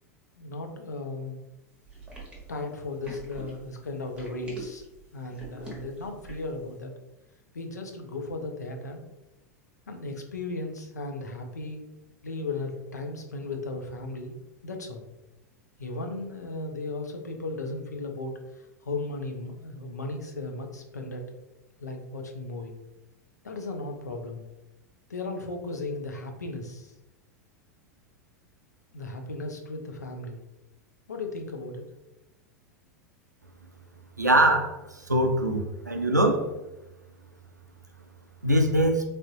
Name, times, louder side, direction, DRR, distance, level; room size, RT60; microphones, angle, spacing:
voice 1, 0.3-1.4 2.5-4.8 5.1-6.9 7.5-9.0 9.9-11.8 12.2-14.3 14.6-15.0 15.8-21.2 21.8-22.7 23.4-24.4 25.1-26.9 28.9-30.4 31.1-31.9, left 2 dB, 75° left, 3 dB, 0.5 m, -36 dB
sound 1, 1.9-6.6, right 1 dB, 10° right, 0.9 m, -44 dB
voice 2, 34.2-34.8 35.1-36.5 38.4-39.0, right 1 dB, 90° right, 5 dB, 0.4 m, -22 dB
3.4 x 2.6 x 2.7 m, 0.97 s
figure-of-eight pair, 90°, 9 cm